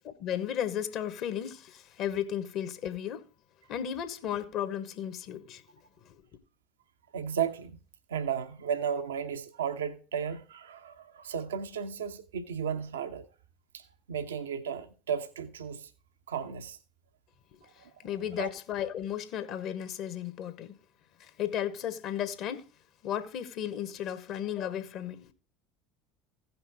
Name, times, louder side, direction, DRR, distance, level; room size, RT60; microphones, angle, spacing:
voice 1, 0.2-3.2 3.7-5.6 6.0-6.2 17.8-20.8 21.2-22.6 23.0-25.3, left 10 dB, 50° left, 1.2 m, -34 dB
voice 2, 7.1-7.8 8.1-13.2 13.7-15.9 16.3-16.8 17.8-17.9 18.4-18.5, right 7 dB, 75° right, 0.8 m, -34 dB
16.0 x 5.8 x 3.5 m
figure-of-eight pair, 70°, 0 cm